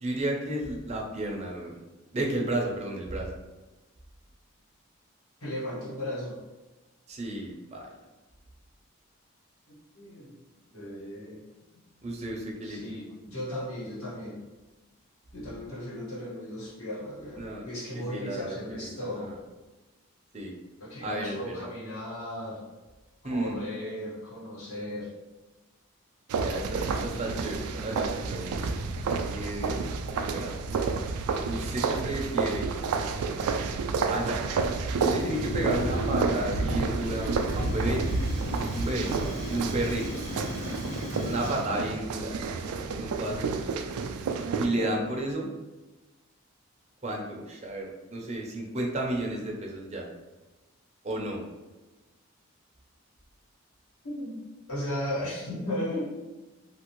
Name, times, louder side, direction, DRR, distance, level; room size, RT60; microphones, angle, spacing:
voice 1, 0.0-1.8 2.1-3.3 7.1-7.9 12.0-12.9 17.4-17.6 17.9-19.4 20.3-20.5 21.0-21.6 23.2-23.6 26.4-28.5 29.3-29.8 30.1-30.5 31.4-32.6 34.1-34.4 35.0-38.1 38.7-39.1 39.5-40.1 41.3-42.6 43.0-43.9 44.6-45.5 47.0-50.0 51.0-51.4, right 1 dB, 30° right, 0 dB, 0.5 m, -32 dB
voice 2, 5.4-6.4 9.7-10.4 10.7-11.4 11.7-11.8 12.6-14.4 15.3-19.3 20.8-22.6 23.2-25.1 44.8-44.9 54.0-54.4 54.7-56.0, left 1 dB, 75° left, -6 dB, 1.3 m, -36 dB
sound 1, 26.3-44.7, right 4 dB, 90° right, 0.3 m, -30 dB
Fire, 35.0-41.7, left 1 dB, 30° left, 0.3 m, -36 dB
2.8 x 2.5 x 3.0 m, 1.1 s
head